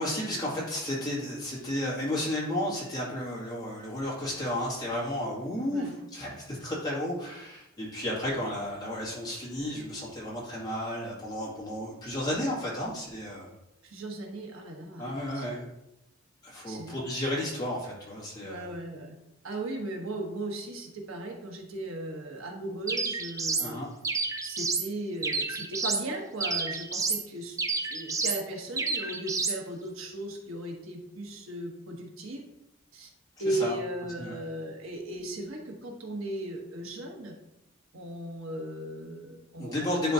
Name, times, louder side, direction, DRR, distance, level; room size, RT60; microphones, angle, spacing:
voice 1, 0.0-13.5 15.0-15.6 16.4-18.7 23.6-23.9 33.4-33.7 34.2-34.3 39.6-40.1, left 1 dB, 20° left, -6 dB, 2.3 m, -33 dB
voice 2, 13.8-15.7 16.7-16.9 18.4-19.1 19.4-23.8 24.4-27.6 27.9-32.4 32.9-33.1 33.4-37.3 37.9-40.1, right 1 dB, 75° right, 1 dB, 1.2 m, -37 dB
sound 1, 22.9-23.7 24.0-24.9 25.2-26.1 26.4-27.2 27.6-28.4 28.8-29.6, right 4 dB, 15° right, 0.5 m, -30 dB
10.5 x 3.8 x 2.8 m, 0.87 s
head